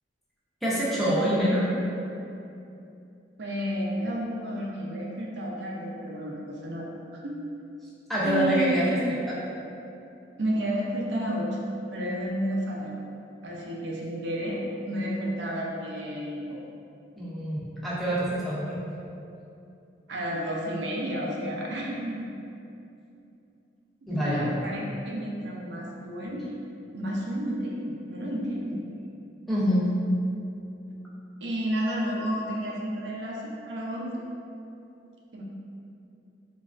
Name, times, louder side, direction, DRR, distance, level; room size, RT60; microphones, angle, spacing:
voice 1, 0.6-1.7 8.1-9.4 17.2-18.8 24.1-24.5 29.5-29.9, equal, ahead, -9 dB, 0.4 m, -26 dB
voice 2, 3.4-7.4 8.2-9.1 10.4-11.5 11.9-13.0 13.4-16.6 20.1-22.4 24.1-26.4 26.9-28.8 31.4-34.1 35.3-35.4, equal, 75° right, -3 dB, 0.4 m, -31 dB
3.1 x 2.3 x 2.4 m, 2.7 s
head